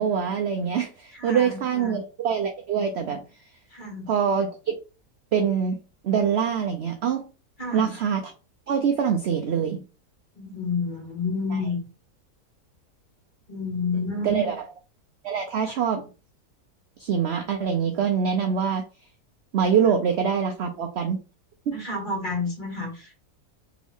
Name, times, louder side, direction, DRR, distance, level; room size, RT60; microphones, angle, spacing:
voice 1, 0.0-3.2 4.1-4.8 5.3-7.2 7.7-8.2 8.7-9.8 11.5-11.6 14.2-14.6 15.2-16.0 17.0-18.8 19.5-21.2 21.7-21.8, right 7 dB, 65° right, 4 dB, 0.6 m, -24 dB
voice 2, 1.1-2.0 3.7-4.1 7.6-7.9 10.3-11.8 13.5-14.5 21.7-23.2, left 3 dB, 30° left, 0 dB, 1.6 m, -30 dB
3.5 x 3.1 x 3.5 m, 0.33 s
omnidirectional pair, 1.6 m